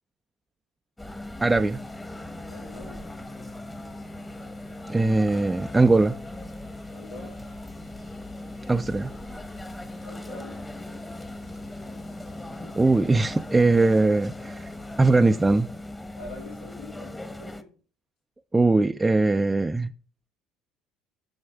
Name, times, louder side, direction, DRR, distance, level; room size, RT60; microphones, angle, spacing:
sound 1, 1.0-17.6, left 1 dB, 15° left, 1.1 m, -39 dB
voice 1, 1.4-1.8 4.9-6.2 8.7-9.1 12.8-14.7 15.0-15.7 18.5-19.9, right 2 dB, 15° right, 0.4 m, -21 dB
sound 2, 1.6-15.3, left 6 dB, 55° left, 1.5 m, -53 dB
voice 2, 2.5-3.1 6.9-7.4 10.0-10.6 16.1-17.7, left 2 dB, 80° left, 3.2 m, -44 dB
7.6 x 7.2 x 3.4 m
hypercardioid pair, 65°, 0 cm